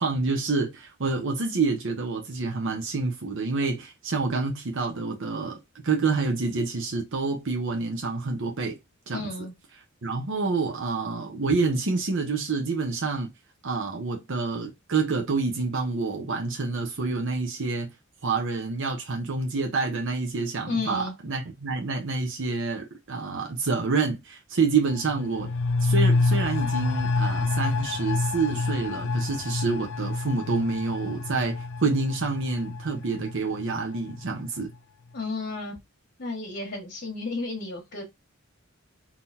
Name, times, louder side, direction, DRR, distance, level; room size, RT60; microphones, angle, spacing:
voice 1, 0.0-5.6 5.8-8.8 9.1-9.3 10.0-13.3 13.6-17.9 18.2-25.5 25.8-34.7, right 4 dB, 65° right, 0.8 m, -28 dB
voice 2, 9.1-9.5 20.7-21.1 35.1-35.8 36.2-38.1, left 3 dB, 50° left, 1.3 m, -32 dB
sound 1, 24.9-34.3 34.6-34.7, left 3 dB, 65° left, 0.5 m, -27 dB
3.9 x 2.9 x 4.1 m
head